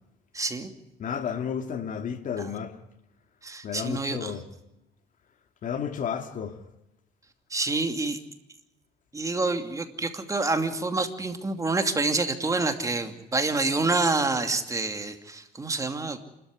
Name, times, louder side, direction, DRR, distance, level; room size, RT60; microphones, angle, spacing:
voice 1, 0.3-0.7 3.4-4.3 7.5-8.2 9.1-16.2, right 3 dB, 20° right, 2.6 m, -27 dB
voice 2, 1.0-2.8 3.6-4.4 5.6-6.6, left 7 dB, 50° left, 2.4 m, -32 dB
28.0 x 13.5 x 9.7 m
cardioid pair, 110°, 17 cm